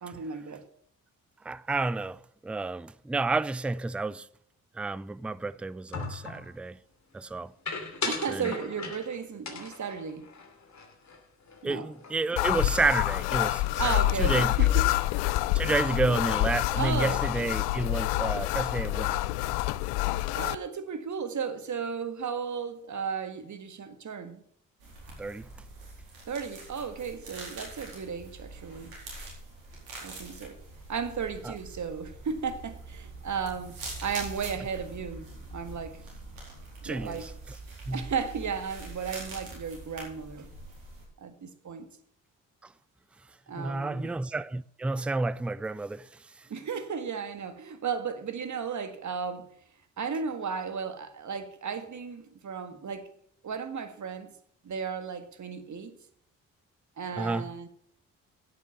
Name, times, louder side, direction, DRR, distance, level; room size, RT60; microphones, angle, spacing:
voice 1, 0.0-0.6 8.0-10.3 11.6-11.9 13.8-14.9 15.9-16.0 16.8-17.3 20.4-24.4 26.3-28.9 30.0-30.6 30.9-36.0 36.9-37.3 37.9-40.5 41.2-41.9 43.5-44.1 46.5-49.5 50.0-53.1 53.4-54.3 54.6-56.0 57.0-57.7, right 6 dB, 45° right, 1.7 m, -35 dB
voice 2, 1.4-4.3 4.8-6.8 7.1-7.5 8.3-8.5 11.6-14.5 15.5-19.2 25.2-25.5 31.4-31.5 36.8-37.3 37.9-38.1 43.6-46.1 57.2-57.5, right 3 dB, 5° right, 0.4 m, -30 dB
sound 1, 5.9-6.5 7.7-9.2 9.5-11.2 11.5-11.6 11.9-12.4, left 4 dB, 45° left, 2.9 m, -37 dB
sound 2, 12.4-20.6, left 16 dB, 70° left, 0.6 m, -27 dB
sound 3, 24.8-41.0, right 2 dB, 80° right, 4.3 m, -44 dB
11.0 x 8.6 x 5.7 m
hypercardioid pair, 40°, 40 cm